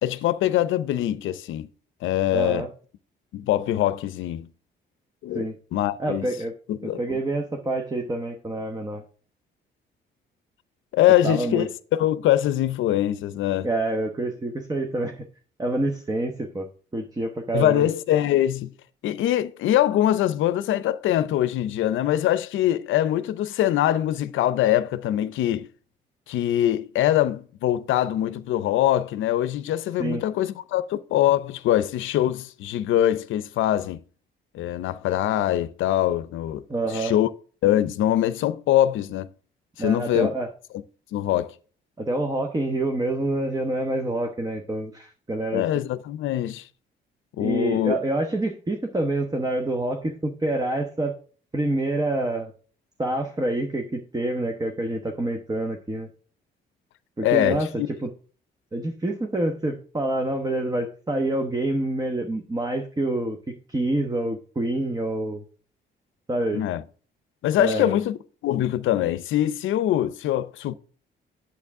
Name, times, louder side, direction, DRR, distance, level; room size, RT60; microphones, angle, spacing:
voice 1, 0.0-1.7 2.0-2.6 3.3-4.5 5.2-5.4 5.7-6.3 6.7-7.2 10.9-11.6 11.9-13.7 17.5-18.7 19.0-25.7 26.3-34.0 34.5-36.6 36.9-37.3 37.6-39.3 39.8-40.3 41.1-41.5 45.5-46.6 47.4-48.0 57.2-57.9 66.5-66.8 67.4-68.2 68.4-70.7, left 12 dB, 80° left, 0.6 m, -23 dB
voice 2, 2.3-2.7 5.3-5.6 6.0-6.5 6.8-9.0 11.2-11.7 13.6-15.2 15.6-16.7 16.9-17.9 30.0-30.2 36.7-37.1 39.8-40.5 42.0-45.7 47.4-51.1 51.5-52.5 53.0-56.1 57.2-58.1 58.7-63.4 63.7-65.4 66.3-66.7 67.6-68.0, right 2 dB, 20° right, 1.0 m, -27 dB
8.3 x 7.3 x 3.6 m
cardioid pair, 90°, 20 cm